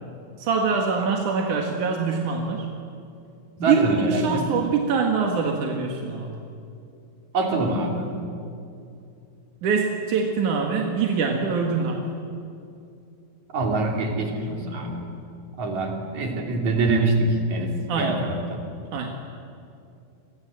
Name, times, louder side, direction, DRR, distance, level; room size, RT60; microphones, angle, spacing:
voice 1, 0.4-2.7 3.6-6.4 9.6-12.1 17.9-18.2 18.9-19.1, right 5 dB, 55° right, 2 dB, 2.4 m, -24 dB
voice 2, 3.6-4.6 7.3-8.2 13.5-15.1 15.6-18.6, right 2 dB, 40° right, 2 dB, 3.8 m, -25 dB
29.5 x 23.0 x 7.7 m, 2.5 s
omnidirectional pair, 5.8 m